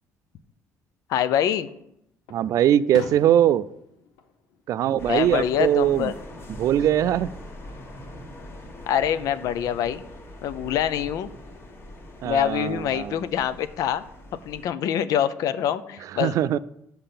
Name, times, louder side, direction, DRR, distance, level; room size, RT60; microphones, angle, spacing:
Fireworks, 1.1-1.8 2.3-5.4 5.7-6.3 7.8-8.6, left 6 dB, 90° left, 0.8 m, -44 dB
voice 1, 1.1-1.7 5.1-6.1 8.9-10.0 10.4-11.3 12.2-14.0 14.4-16.3, left 10 dB, 70° left, 13 dB, 0.5 m, -25 dB
voice 2, 2.3-3.7 4.7-6.1 6.6-7.4 12.2-13.1 16.1-16.6, right 11 dB, 60° right, 16 dB, 0.3 m, -21 dB
sound 1, 5.0-14.7, left 1 dB, 40° left, 1.3 m, -42 dB
5.8 x 5.5 x 6.8 m, 0.79 s
cardioid pair, 95°, 6 cm